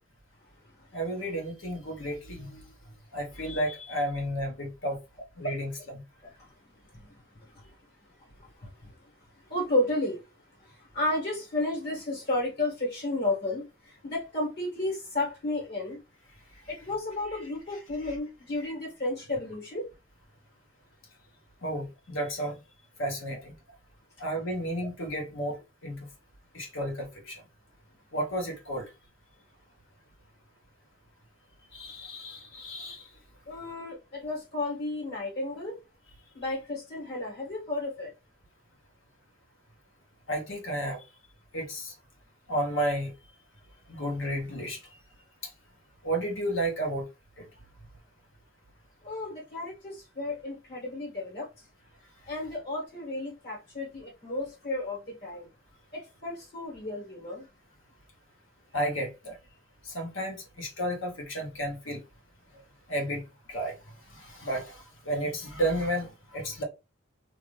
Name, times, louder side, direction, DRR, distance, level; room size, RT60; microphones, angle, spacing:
voice 1, 0.9-2.6 3.1-5.0 5.4-6.0 21.6-22.5 23.0-23.5 24.2-25.6 25.8-26.0 26.5-27.3 28.1-28.8 31.7-33.1 40.3-41.0 41.5-41.9 42.5-43.1 43.9-44.8 46.0-47.0 47.4-47.5 58.7-59.4 59.9-62.0 62.9-63.2 63.5-63.7 64.2-64.8 65.1-66.6, right 1 dB, 75° left, 1.2 m, -32 dB
voice 2, 9.5-10.2 10.9-13.6 14.0-16.0 16.7-19.8 33.5-35.7 36.3-38.1 49.0-51.5 52.3-55.5 55.9-57.4, left 2 dB, 55° left, 1.6 m, -32 dB
2.8 x 2.5 x 3.2 m
head